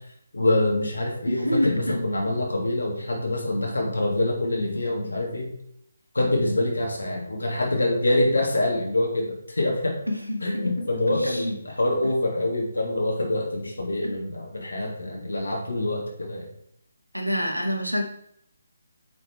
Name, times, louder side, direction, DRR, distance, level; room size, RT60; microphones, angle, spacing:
voice 1, 0.3-5.5 6.1-10.0 10.4-16.5, left 1 dB, 70° left, -1 dB, 3.0 m, -25 dB
voice 2, 1.3-2.0 10.1-11.5 14.0-14.1 17.1-18.0, equal, 90° right, 2 dB, 2.3 m, -27 dB
9.2 x 6.4 x 4.8 m, 0.71 s
figure-of-eight pair, 145°, 0 cm